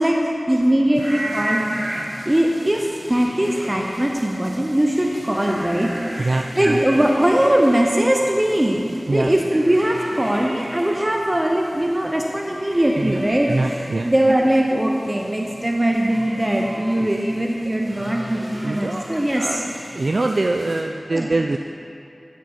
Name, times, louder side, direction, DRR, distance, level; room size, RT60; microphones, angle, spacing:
voice 1, 0.0-1.7 2.3-19.6 21.1-21.3, right 1 dB, 20° right, 0 dB, 0.7 m, -20 dB
sound 1, 0.9-20.8, right 1 dB, 40° right, 2.0 m, -36 dB
voice 2, 6.2-6.8 9.1-9.3 12.9-13.2 13.5-14.1 17.0-17.1 18.6-19.0 19.3-19.6 19.9-21.6, right 2 dB, 65° right, 4 dB, 0.3 m, -23 dB
12.5 x 6.2 x 4.3 m, 2.6 s
wide cardioid pair, 65°, 0 cm